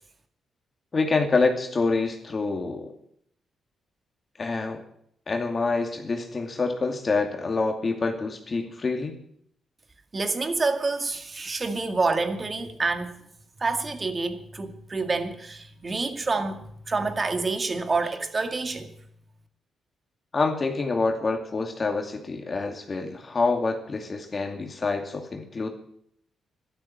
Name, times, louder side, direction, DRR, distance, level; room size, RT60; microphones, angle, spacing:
voice 1, 0.9-2.9 4.4-4.8 5.3-9.2 20.3-25.7, left 3 dB, 35° left, 2.5 m, -26 dB
voice 2, 10.1-13.2 13.6-18.9, right 3 dB, 35° right, 2.1 m, -28 dB
12.5 x 12.5 x 7.4 m
cardioid pair, 90°, 0 cm